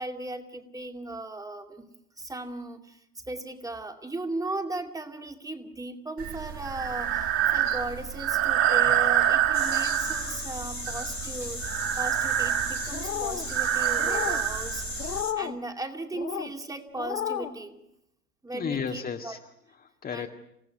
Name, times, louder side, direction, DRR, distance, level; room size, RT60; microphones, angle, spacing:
voice 1, 0.0-1.8 2.2-3.0 3.3-14.8 15.4-17.8 18.4-19.4 20.1-20.3, right 2 dB, 5° right, 5 dB, 2.4 m, -37 dB
Breathing, 6.2-15.2, right 10 dB, 30° right, 3.0 m, -27 dB
sound 1, 9.5-15.3, left 2 dB, 90° left, 2.6 m, -37 dB
sound 2, 12.9-13.5 14.0-14.4 15.0-15.6 16.1-16.5 17.0-17.5, left 9 dB, 70° left, 1.9 m, -32 dB
voice 2, 18.5-20.3, left 6 dB, 20° left, 4 dB, 2.0 m, -34 dB
29.0 x 17.5 x 9.4 m, 0.82 s
figure-of-eight pair, 90°, 47 cm